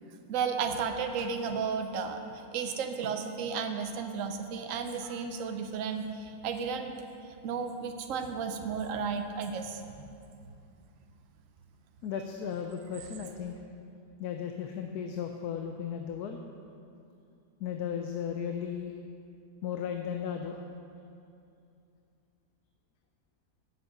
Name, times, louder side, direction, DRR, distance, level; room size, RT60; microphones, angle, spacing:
voice 1, 0.3-7.0 7.4-10.1, right 6 dB, 65° right, 6 dB, 1.0 m, -33 dB
voice 2, 12.0-13.5 14.2-16.4 17.6-18.9 19.6-20.6, left 8 dB, 85° left, 4 dB, 1.1 m, -35 dB
8.0 x 7.0 x 7.7 m, 2.6 s
omnidirectional pair, 1.6 m